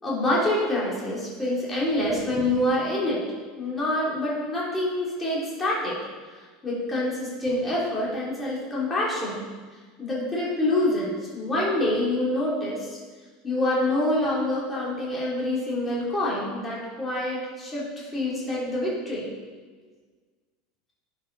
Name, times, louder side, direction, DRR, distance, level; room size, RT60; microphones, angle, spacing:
voice 1, 0.0-3.2 3.6-6.0 6.3-9.5 10.0-13.0 13.4-19.3, left 1 dB, 15° left, -6 dB, 2.9 m, -26 dB
11.0 x 8.5 x 4.0 m, 1.4 s
supercardioid pair, 160°, 0 cm